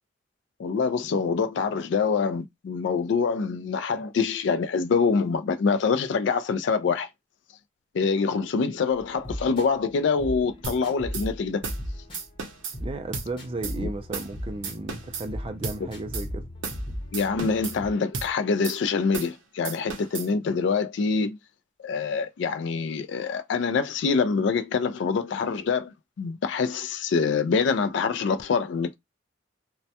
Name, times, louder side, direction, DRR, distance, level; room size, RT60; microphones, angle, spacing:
voice 1, 0.6-7.1 7.9-11.6 13.8-13.9 17.1-21.4 21.8-29.0, left 5 dB, 70° left, 0.3 m, -25 dB
sound 1, 8.9-17.9, equal, 25° left, 0.8 m, -37 dB
sound 2, 10.6-10.8 11.1-11.3 11.6-11.8 12.1-12.8 13.1-13.3 13.6-13.8 14.1-14.3 14.6-15.3 15.6-15.8 16.1-16.3 16.6-16.8 17.1-17.8 18.1-18.3 18.6-18.8 19.1-19.4 19.7-20.3, right 5 dB, 80° right, 0.6 m, -34 dB
voice 2, 12.8-16.5, right 2 dB, 30° right, 0.3 m, -34 dB
2.2 x 2.1 x 2.7 m
head